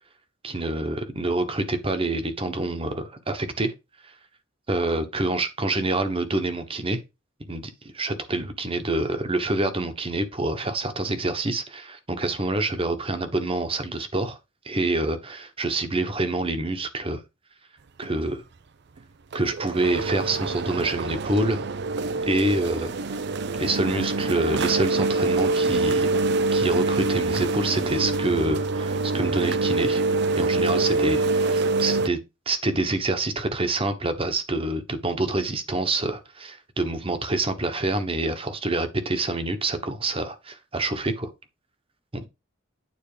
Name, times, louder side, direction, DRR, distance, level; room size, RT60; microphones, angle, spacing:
voice 1, 0.4-3.7 4.0-4.1 4.7-7.0 7.5-14.4 14.6-17.2 18.0-18.4 19.3-21.6 22.3-22.9 23.6-26.1 26.5-30.0 30.3-32.2 32.5-41.3 42.1-42.3, right 2 dB, 30° right, 1.2 m, -27 dB
sound 1, 18.0-18.1 19.0-19.1 19.3-32.1, right 3 dB, 55° right, 0.5 m, -25 dB
9.4 x 4.1 x 5.0 m
head